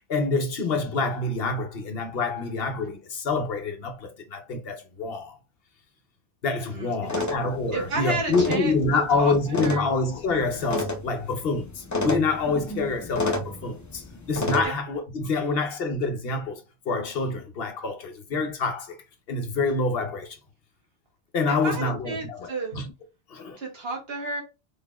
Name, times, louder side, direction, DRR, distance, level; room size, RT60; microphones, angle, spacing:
voice 1, 0.1-5.4 6.4-16.6 16.9-19.0 19.3-20.4 21.3-22.9 23.3-23.6, left 3 dB, 60° left, 0.9 m, -27 dB
voice 2, 6.7-7.2 7.7-9.9 14.6-14.7 21.5-22.7 23.6-24.4, right 3 dB, 60° right, 1.4 m, -32 dB
sound 1, 7.0-14.6, left 2 dB, 30° left, 0.3 m, -32 dB
3.9 x 3.5 x 2.3 m
omnidirectional pair, 1.2 m